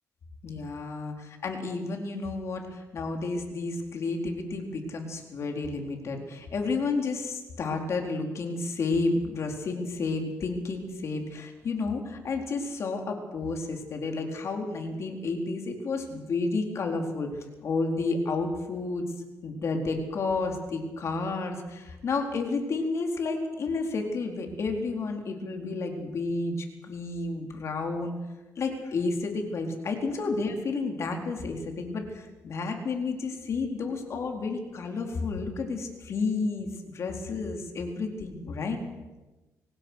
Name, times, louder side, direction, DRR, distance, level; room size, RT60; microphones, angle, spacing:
voice 1, 0.4-17.3 17.6-19.0 19.4-28.1 28.6-36.7 36.9-38.8, left 3 dB, 50° left, 3 dB, 4.2 m, -31 dB
25.0 x 18.5 x 6.5 m, 1.1 s
cardioid pair, 120°, 6 cm